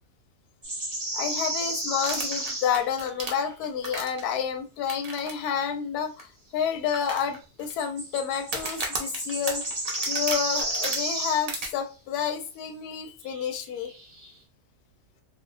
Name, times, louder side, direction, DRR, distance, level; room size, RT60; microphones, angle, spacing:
sound 1, 0.6-2.8 3.2-3.3 7.8-11.5 13.2-13.6 13.8-14.3, right 1 dB, 30° right, 0.6 m, -32 dB
voice 1, 1.1-9.6 10.1-13.9, left 7 dB, 85° left, 7 dB, 1.1 m, -29 dB
sound 2, 2.0-4.3 4.9-5.3 5.6-5.7 6.2-6.3 6.9-7.7 8.4-11.0 11.5-11.7, right 3 dB, 80° right, 0.3 m, -34 dB
2.6 x 2.3 x 2.6 m, 0.32 s
omnidirectional pair, 1.6 m